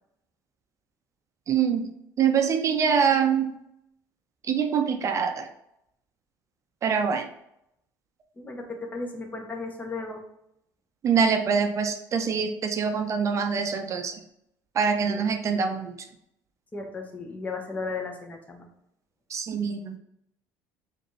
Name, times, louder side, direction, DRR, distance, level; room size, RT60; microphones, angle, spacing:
voice 1, 1.5-1.9 2.2-3.5 4.5-5.5 6.8-7.3 11.0-14.2 14.8-15.9 19.3-20.0, right 6 dB, 40° right, 6 dB, 0.5 m, -24 dB
voice 2, 8.4-10.2 15.0-15.2 16.7-18.7, left 3 dB, 20° left, 2 dB, 0.9 m, -35 dB
5.0 x 2.6 x 3.1 m, 0.80 s
cardioid pair, 110°, 8 cm